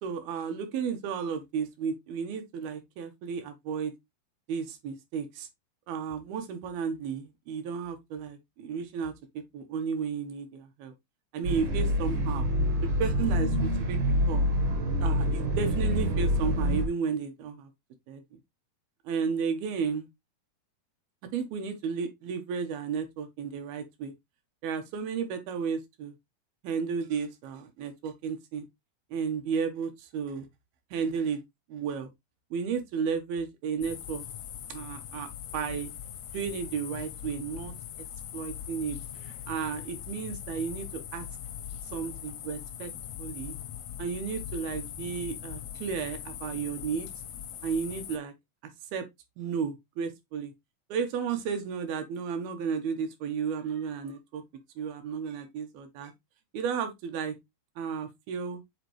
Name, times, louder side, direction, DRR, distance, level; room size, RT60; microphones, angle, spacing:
voice 1, 0.0-3.9 4.5-5.5 5.9-10.9 11.3-12.5 12.8-14.5 15.0-17.7 18.1-18.4 19.0-20.1 21.3-24.1 24.6-26.1 26.6-28.6 29.1-30.5 30.9-31.4 31.7-32.1 32.5-34.2 34.7-35.3 35.5-35.9 36.3-37.7 38.3-39.0 39.2-41.3 41.9-42.9 43.2-43.6 44.0-47.1 47.6-48.3 48.9-49.1 49.4-50.5 50.9-54.4 54.8-56.1 56.5-57.4 57.8-58.6, right 6 dB, 80° right, 3.0 m, -33 dB
sound 1, 11.4-16.9, equal, 60° right, 1.3 m, -26 dB
sound 2, 33.8-48.2, left 10 dB, 80° left, 1.6 m, -41 dB
7.3 x 4.1 x 3.1 m
omnidirectional pair, 4.3 m